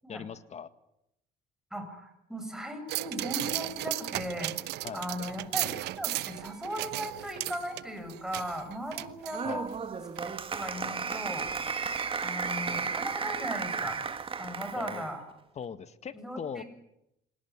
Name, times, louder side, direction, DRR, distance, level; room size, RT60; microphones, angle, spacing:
voice 1, 0.1-0.7 4.8-5.0 9.4-9.6 14.8-15.0 15.6-16.6, left 7 dB, 40° left, 13 dB, 1.8 m, -40 dB
voice 2, 1.7-4.5 4.9-5.7 6.0-9.7 10.2-11.5 12.2-14.0 14.4-15.2 16.1-16.6, equal, 5° right, 6 dB, 7.3 m, -37 dB
sound 1, 2.9-9.8 10.2-10.3, right 17 dB, 85° right, 1.0 m, -35 dB
Applause, 9.3-15.1, right 5 dB, 30° right, 2.1 m, -34 dB
26.5 x 18.0 x 9.7 m, 0.82 s
cardioid pair, 110°, 17 cm